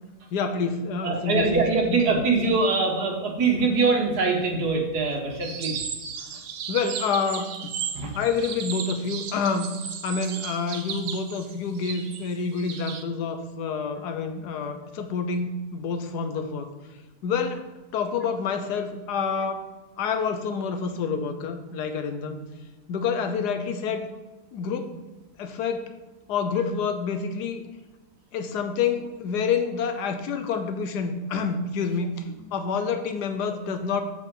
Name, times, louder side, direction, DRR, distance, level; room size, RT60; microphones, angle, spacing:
voice 1, 0.3-2.0 6.3-6.4 6.7-7.7 8.1-9.7 10.0-16.7 17.2-17.7 17.9-19.7 20.0-22.4 22.9-24.1 24.5-25.0 25.4-25.9 26.3-27.6 28.3-34.0, left 5 dB, 75° left, 7 dB, 1.2 m, -28 dB
voice 2, 1.0-5.8 7.9-8.1, right 4 dB, 70° right, 2 dB, 1.7 m, -23 dB
sound 1, 5.4-13.0, right 7 dB, 90° right, 1.4 m, -35 dB
7.5 x 6.3 x 3.8 m, 1.2 s
omnidirectional pair, 1.8 m